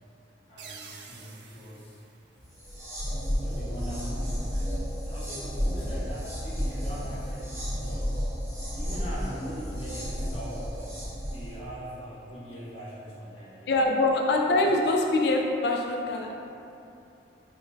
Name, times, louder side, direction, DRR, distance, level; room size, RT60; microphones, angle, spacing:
voice 1, 0.5-2.0 3.3-8.1 8.7-11.0 11.3-13.9, equal, 30° left, -9 dB, 0.8 m, -41 dB
sound 1, 0.6-3.1, right 5 dB, 80° right, 0.4 m, -49 dB
sound 2, 2.5-11.6, equal, 15° right, 0.8 m, -32 dB
voice 2, 13.7-16.3, left 2 dB, 65° left, 1 dB, 0.4 m, -24 dB
4.9 x 2.1 x 2.6 m, 2.7 s
head